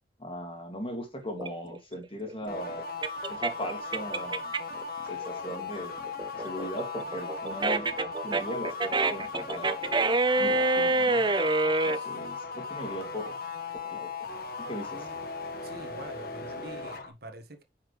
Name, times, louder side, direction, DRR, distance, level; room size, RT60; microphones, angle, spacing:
voice 1, 0.2-2.9 3.3-4.5 5.1-5.9 6.3-7.9 8.2-9.7 10.4-11.2 11.8-13.4 13.8-14.1 14.6-15.0, equal, 30° left, 2.3 m, -38 dB
sound 1, 1.4-4.8 5.2-12.0, right 2 dB, 25° right, 0.7 m, -27 dB
sound 2, 2.5-17.1, left 4 dB, 55° left, 1.6 m, -38 dB
voice 2, 14.9-15.3 15.6-17.6, right 2 dB, 60° right, 1.6 m, -46 dB
10.0 x 5.9 x 3.3 m
head